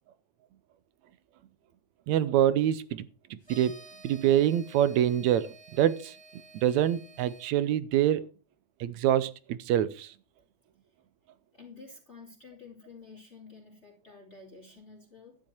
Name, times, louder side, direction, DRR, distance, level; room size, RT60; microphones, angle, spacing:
voice 1, 2.1-3.8 4.0-6.2 6.5-8.3 8.8-10.1, right 11 dB, 80° right, 2.0 m, -26 dB
sound 1, 3.4-7.5, right 2 dB, 15° right, 1.2 m, -52 dB
voice 2, 11.5-15.4, left 4 dB, 25° left, 2.8 m, -50 dB
12.0 x 10.0 x 4.5 m
omnidirectional pair, 3.3 m